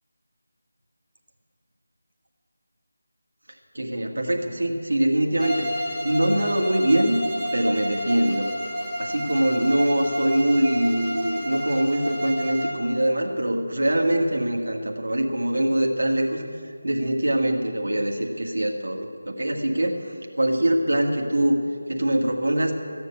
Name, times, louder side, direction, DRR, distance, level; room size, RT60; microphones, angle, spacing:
voice 1, 3.7-7.2 7.5-8.5 9.0-20.0 20.4-21.6 21.9-22.7, right 1 dB, 85° right, 0 dB, 1.8 m, -23 dB
Bowed string instrument, 5.4-12.9, equal, 5° left, 1.5 m, -30 dB
14.5 x 8.2 x 9.8 m, 2.3 s
figure-of-eight pair, 180°, 0 cm